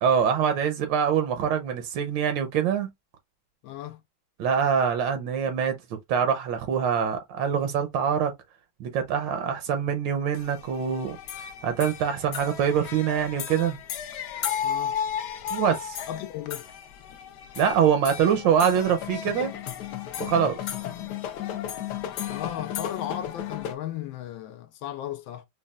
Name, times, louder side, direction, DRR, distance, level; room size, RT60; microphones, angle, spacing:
voice 1, 0.0-2.9 4.4-5.8 6.1-8.3 8.8-11.2 11.6-13.8 15.5-16.0 17.6-19.5 20.2-20.6, right 7 dB, 80° right, 1.3 m, -24 dB
voice 2, 3.6-4.0 14.6-14.9 16.1-16.6 22.3-25.5, left 11 dB, 90° left, 1.4 m, -35 dB
sound 1, 10.3-23.7, left 9 dB, 70° left, 1.1 m, -34 dB
5.2 x 2.2 x 2.3 m
omnidirectional pair, 2.1 m